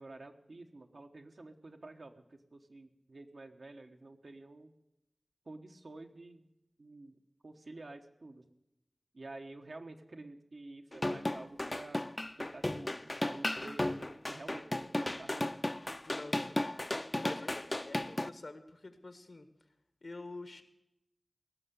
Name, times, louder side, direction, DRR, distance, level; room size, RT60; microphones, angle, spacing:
voice 1, 0.0-4.7 5.4-6.4 6.8-7.2 7.4-8.4 9.1-12.0 12.4-13.0 13.2-15.5, right 2 dB, 85° right, 4 dB, 1.2 m, -50 dB
sound 1, 10.9-18.3, left 1 dB, 35° left, 0.5 m, -35 dB
voice 2, 16.0-16.6 17.2-19.5 20.0-20.6, left 2 dB, 80° left, 8 dB, 1.6 m, -47 dB
17.5 x 6.8 x 9.7 m, 0.86 s
wide cardioid pair, 45°, 0 cm